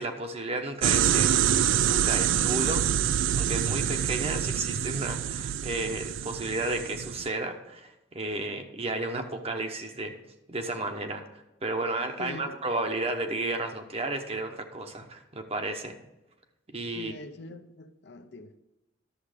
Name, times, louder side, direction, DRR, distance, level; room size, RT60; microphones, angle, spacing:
voice 1, 0.0-2.8 3.4-10.1 10.5-16.0 16.7-17.1, right 2 dB, 30° right, 1.0 m, -33 dB
sound 1, 0.8-7.3, right 9 dB, 75° right, 0.4 m, -26 dB
voice 2, 12.2-12.6 16.9-18.6, left 2 dB, 60° left, 0.7 m, -43 dB
11.5 x 7.1 x 5.1 m
head